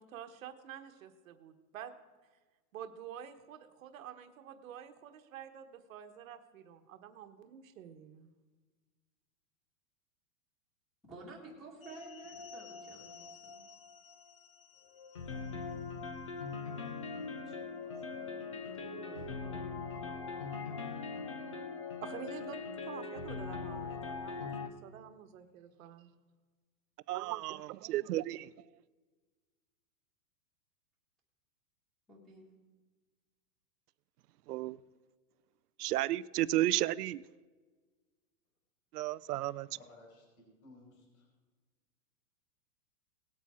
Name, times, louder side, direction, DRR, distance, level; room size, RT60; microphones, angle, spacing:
voice 1, 0.0-1.9 2.7-8.3 22.0-22.6 22.9-26.1, right 9 dB, 60° right, 1.2 m, -49 dB
voice 2, 11.1-13.6 17.5-18.9 32.1-32.5, right 2 dB, ahead, 1.9 m, -53 dB
sound 1, 11.8-24.7, left 4 dB, 25° left, 0.3 m, -42 dB
voice 3, 18.5-20.5 39.8-40.3 40.6-41.3, left 2 dB, 65° left, 4.7 m, -57 dB
voice 4, 27.1-28.5 34.5-34.8 35.8-37.2 38.9-39.7, right 15 dB, 85° right, 0.5 m, -32 dB
18.5 x 8.6 x 3.7 m
supercardioid pair, 160°, 45 cm